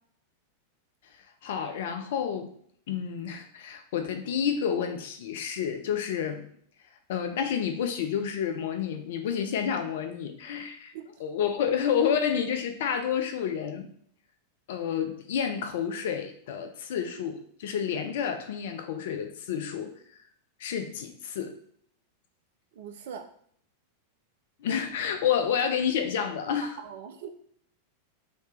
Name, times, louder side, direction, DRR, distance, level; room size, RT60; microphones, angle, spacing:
voice 1, 1.4-2.5 2.9-6.4 7.1-10.9 11.2-13.9 14.7-19.9 20.6-21.6 24.6-26.7, left 8 dB, 55° left, 6 dB, 0.4 m, -29 dB
voice 2, 22.7-23.3 26.8-27.3, right 8 dB, 55° right, 6 dB, 0.4 m, -41 dB
3.1 x 2.8 x 3.2 m, 0.63 s
figure-of-eight pair, 90°, 0 cm